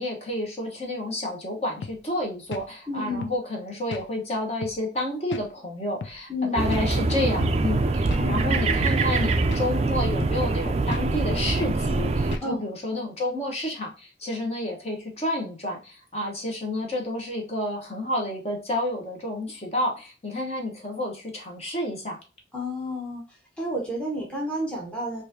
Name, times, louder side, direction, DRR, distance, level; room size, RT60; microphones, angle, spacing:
voice 1, 0.0-22.2, left 1 dB, 35° left, 1 dB, 1.0 m, -30 dB
sound 1, 1.8-2.0 2.5-2.7 3.2-3.4 3.9-4.1 4.6-4.8 5.3-5.5 6.0-6.2 6.7-6.9 7.4-7.6 8.1-8.3 8.8-9.0 9.5-9.7 10.2-10.4 10.9-11.1 11.6-11.8 12.3-12.5, left 4 dB, 80° left, 0.4 m, -36 dB
voice 2, 2.9-3.3 6.3-6.6 8.2-8.5 12.4-12.6 22.5-23.2 23.6-25.2, left 1 dB, 5° left, -3 dB, 0.9 m, -30 dB
sound 2, 6.6-12.4, right 3 dB, 35° right, 0.3 m, -24 dB
4.7 x 2.6 x 2.7 m, 0.33 s
head